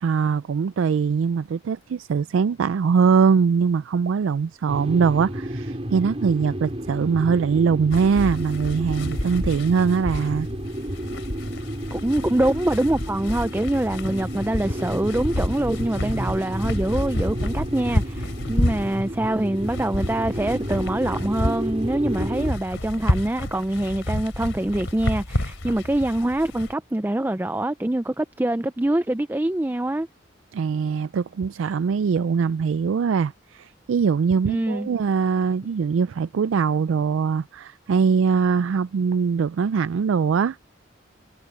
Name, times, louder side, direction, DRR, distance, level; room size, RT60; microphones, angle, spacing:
voice 1, 0.0-10.5 30.5-40.6, right 6 dB, 90° right, 0.4 m, -22 dB
sound 1, 4.7-22.5, equal, 30° right, 4.5 m, -32 dB
sound 2, 7.9-26.7, left 1 dB, 85° left, 3.3 m, -30 dB
voice 2, 11.9-30.1 34.5-34.9, right 1 dB, 10° right, 0.4 m, -24 dB
head